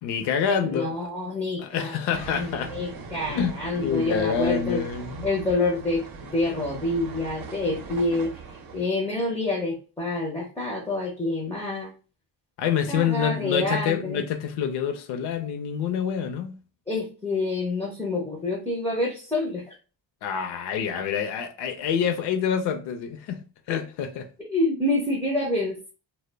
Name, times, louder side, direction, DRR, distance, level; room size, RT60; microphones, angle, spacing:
voice 1, 0.0-1.1 1.6-2.7 3.3-5.2 12.6-16.6 20.2-24.3, left 7 dB, 65° left, 0.5 m, -27 dB
voice 2, 0.6-4.8 5.2-8.3 8.7-11.9 12.9-14.2 16.9-19.8 24.4-25.9, left 2 dB, 5° left, 0.4 m, -27 dB
sound 1, 2.1-8.9, right 5 dB, 55° right, 0.6 m, -40 dB
2.1 x 2.0 x 3.2 m
cardioid pair, 135°, 43 cm